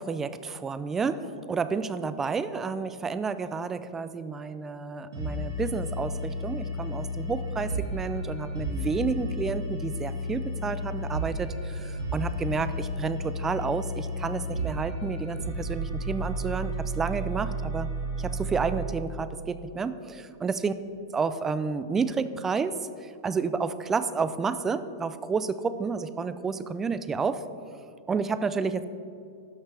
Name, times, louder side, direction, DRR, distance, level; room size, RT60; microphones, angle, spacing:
voice 1, 0.0-17.9 18.2-20.7 21.1-22.7 23.2-27.4 28.1-28.8, right 5 dB, 15° right, 13 dB, 0.4 m, -30 dB
sound 1, 5.1-18.8, equal, 80° right, 2.0 m, -32 dB
12.5 x 5.8 x 3.3 m, 2.5 s
hypercardioid pair, 120°, 2 cm